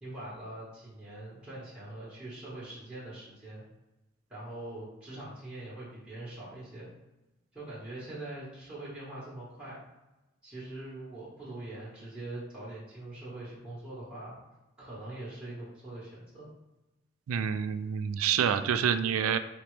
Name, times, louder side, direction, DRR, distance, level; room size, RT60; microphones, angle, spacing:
voice 1, 0.0-3.6 4.3-6.9 7.5-9.8 10.4-14.3 14.8-16.5, right 1 dB, 5° right, -10 dB, 1.2 m, -43 dB
voice 2, 17.3-19.4, right 8 dB, 80° right, 10 dB, 0.3 m, -27 dB
4.2 x 2.8 x 3.2 m, 1.0 s
head